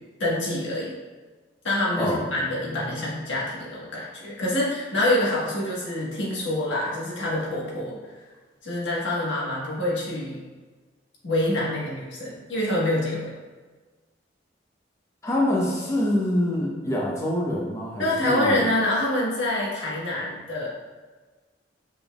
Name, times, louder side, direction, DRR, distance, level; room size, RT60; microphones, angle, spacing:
voice 1, 0.2-0.9 1.6-8.1 8.6-10.4 11.2-13.3 18.0-20.7, left 1 dB, 85° left, -5 dB, 1.4 m, -26 dB
voice 2, 15.2-18.7, left 1 dB, 15° left, -4 dB, 0.7 m, -25 dB
5.2 x 4.1 x 2.3 m, 1.4 s
head